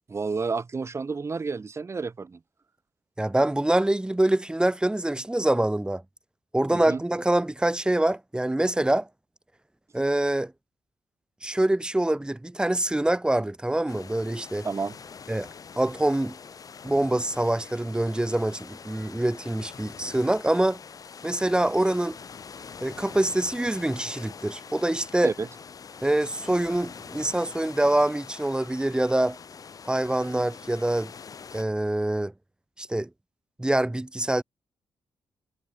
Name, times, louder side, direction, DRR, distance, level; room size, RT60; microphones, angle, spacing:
voice 1, 0.1-2.4 6.7-7.0 14.6-14.9 25.2-25.5, right 4 dB, 35° right, 4.1 m, -30 dB
voice 2, 3.2-6.0 6.5-9.1 9.9-10.5 11.4-14.7 15.3-15.5 15.8-16.3 16.8-20.8 21.2-22.2 22.8-25.3 26.0-29.4 29.8-31.1 31.5-32.3 32.8-33.1 33.6-34.4, right 1 dB, 10° right, 4.9 m, -25 dB
sound 1, 13.9-31.6, left 6 dB, 50° left, 5.8 m, -44 dB
cardioid pair, 90°, 8 cm